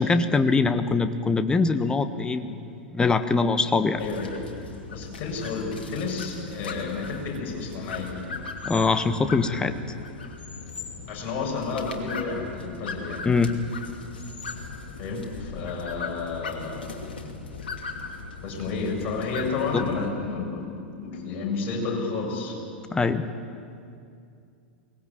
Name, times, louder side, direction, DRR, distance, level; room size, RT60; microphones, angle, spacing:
voice 1, 0.0-4.0 8.6-9.7 13.2-13.6 19.7-19.8 22.9-23.2, left 4 dB, 15° left, 10 dB, 1.3 m, -23 dB
sound 1, 4.0-20.1, left 4 dB, 65° left, 2.7 m, -38 dB
voice 2, 4.0-4.4 4.9-8.2 11.1-13.3 15.0-16.9 18.4-22.6, left 4 dB, 40° left, -1 dB, 6.8 m, -31 dB
23.0 x 19.5 x 8.9 m, 2.5 s
figure-of-eight pair, 90°, 6 cm